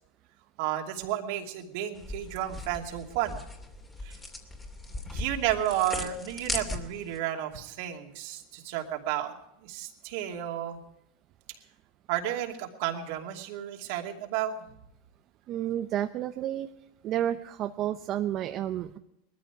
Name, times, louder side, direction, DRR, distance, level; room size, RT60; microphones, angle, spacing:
voice 1, 0.6-3.4 4.0-4.2 5.1-9.3 9.6-10.8 11.5-11.6 12.1-14.6, right 12 dB, 65° right, 2 dB, 2.6 m, -32 dB
sound 1, 2.0-7.2, left 2 dB, 15° left, 2.6 m, -38 dB
voice 2, 15.5-16.7 17.0-19.0, right 11 dB, 45° right, 7 dB, 0.7 m, -31 dB
20.0 x 13.5 x 4.8 m, 0.83 s
supercardioid pair, 125°, 0 cm